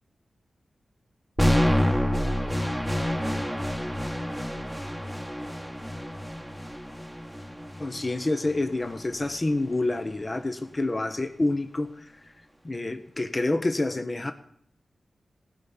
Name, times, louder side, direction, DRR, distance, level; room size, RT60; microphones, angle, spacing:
sound 1, 1.4-9.4, equal, ahead, 1.2 m, -28 dB
voice 1, 7.8-12.1 12.6-14.3, left 2 dB, 35° left, 9 dB, 0.9 m, -28 dB
15.5 x 5.6 x 8.6 m, 0.71 s
cardioid pair, 50°, 0 cm